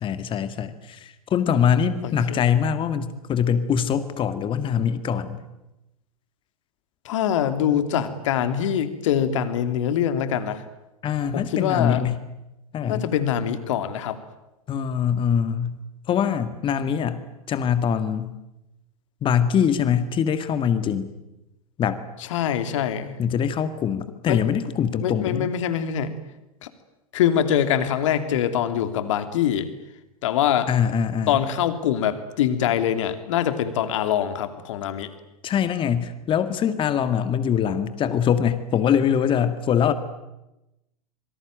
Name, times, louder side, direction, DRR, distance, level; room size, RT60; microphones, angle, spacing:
voice 1, 0.0-5.4 11.0-12.2 12.7-13.0 14.7-15.8 16.1-17.2 17.5-18.3 19.2-21.1 21.8-22.0 23.2-25.5 30.7-31.4 35.4-39.9, left 8 dB, 25° left, 11 dB, 2.0 m, -23 dB
voice 2, 2.0-2.4 7.0-10.6 11.3-12.0 12.9-14.2 22.3-23.1 24.3-24.4 25.0-26.1 26.6-26.7 27.1-29.7 30.2-30.7 31.3-35.1, left 9 dB, 55° left, 10 dB, 3.0 m, -24 dB
26.5 x 24.0 x 9.1 m, 0.93 s
figure-of-eight pair, 90°, 19 cm